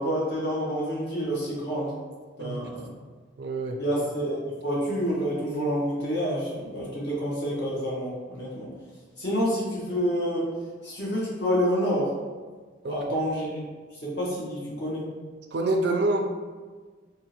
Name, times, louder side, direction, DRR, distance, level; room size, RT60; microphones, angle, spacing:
voice 1, 0.0-1.9 2.4-2.8 3.8-4.4 4.6-8.7 9.2-10.4 10.8-12.1 12.8-13.6 14.0-15.0, equal, 60° left, -6 dB, 1.1 m, -28 dB
voice 2, 2.4-2.7 3.4-3.8 12.8-13.0 15.5-16.2, right 2 dB, 55° right, 3 dB, 0.4 m, -26 dB
3.6 x 2.5 x 2.8 m, 1.4 s
head